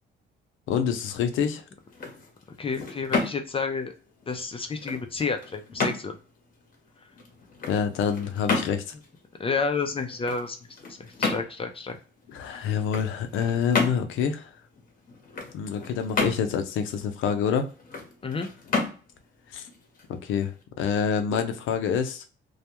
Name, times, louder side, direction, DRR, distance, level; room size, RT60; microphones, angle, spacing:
voice 1, 0.7-1.6 7.7-8.8 12.3-14.5 15.5-17.7 19.5-19.6 20.1-22.2, left 7 dB, 85° left, 7 dB, 0.5 m, -27 dB
sound 1, 1.8-20.6, left 3 dB, 45° left, 0.8 m, -33 dB
voice 2, 2.6-3.9 4.3-6.2 9.4-10.6 11.2-12.0 12.4-12.8 18.2-18.5, left 4 dB, 30° left, 6 dB, 0.4 m, -30 dB
2.2 x 2.1 x 2.8 m, 0.37 s
cardioid pair, 90°, 20 cm